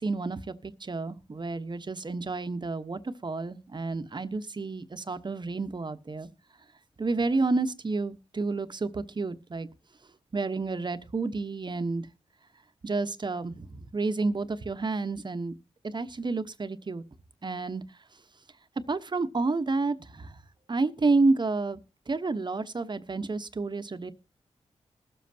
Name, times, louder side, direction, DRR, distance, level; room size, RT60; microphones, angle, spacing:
voice 1, 0.0-6.3 7.0-9.7 10.3-12.1 12.8-15.5 15.8-17.0 17.4-17.8 18.9-20.4 20.7-21.8 22.1-24.1, right 3 dB, 40° right, 1.1 m, -30 dB
21.0 x 7.5 x 2.8 m
cardioid pair, 65°, 12 cm